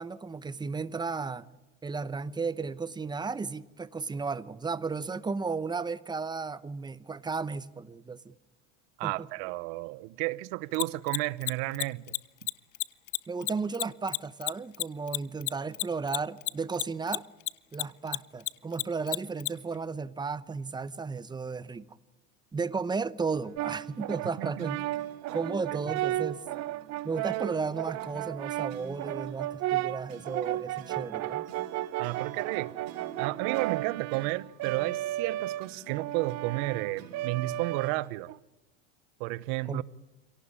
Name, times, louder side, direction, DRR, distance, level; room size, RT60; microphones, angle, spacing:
voice 1, 0.0-1.5 1.8-8.3 9.0-9.3 13.3-17.3 17.7-22.0 22.5-24.8 25.3-26.4 27.0-31.5 39.7-39.8, right 4 dB, 10° right, 0.8 m, -34 dB
voice 2, 9.0-12.1 12.4-12.5 24.4-24.7 25.7-25.8 32.0-32.7 33.2-38.3 39.2-39.8, right 19 dB, 65° right, 1.0 m, -32 dB
Mechanisms, 10.7-17.5 17.7-19.5, left 24 dB, 75° left, 0.8 m, -30 dB
sound 1, 23.4-38.1, right 6 dB, 85° right, 5.3 m, -51 dB
Brass instrument, 23.6-38.4, right 15 dB, 45° right, 0.8 m, -34 dB
26.5 x 18.0 x 9.8 m
supercardioid pair, 120°, 38 cm